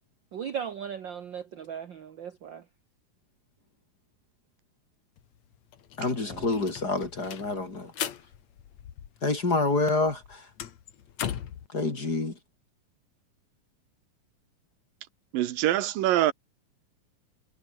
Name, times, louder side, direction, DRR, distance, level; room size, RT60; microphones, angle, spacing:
voice 1, 0.3-2.6, right 8 dB, 55° right, 1.3 m, -37 dB
sound 1, 5.2-5.3 5.5-9.5 9.7-11.7, left 9 dB, 60° left, 2.8 m, -38 dB
voice 2, 6.0-7.9 9.2-10.5 11.7-12.3, left 3 dB, 30° left, 3.7 m, -27 dB
voice 3, 15.3-16.3, right 13 dB, 90° right, 3.0 m, -25 dB
omnidirectional pair, 3.9 m